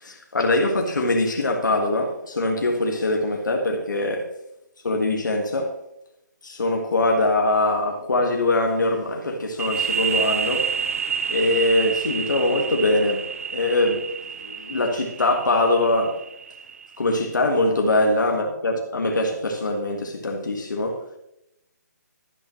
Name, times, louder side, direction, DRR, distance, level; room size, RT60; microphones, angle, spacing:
voice 1, 0.0-4.3 4.8-5.7 6.4-10.7 11.3-13.2 13.5-14.0 14.4-16.2 17.0-21.0, left 2 dB, 90° left, 1.7 m, -22 dB
sound 1, 9.6-17.1, right 7 dB, 50° right, 0.5 m, -29 dB
12.5 x 12.0 x 3.1 m
hypercardioid pair, 165°, 10 cm